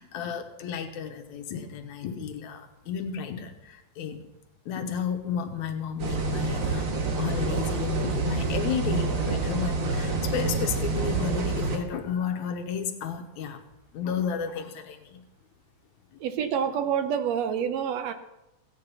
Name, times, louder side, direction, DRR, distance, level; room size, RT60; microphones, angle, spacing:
voice 1, 0.0-4.3 4.7-13.6 13.9-15.2 16.1-16.2, left 7 dB, 85° left, 6 dB, 2.5 m, -33 dB
sound 1, 6.0-11.8, right 3 dB, 50° right, 1.8 m, -27 dB
voice 2, 16.2-18.1, right 8 dB, 70° right, 10 dB, 1.9 m, -27 dB
15.5 x 9.6 x 5.6 m, 0.94 s
omnidirectional pair, 3.3 m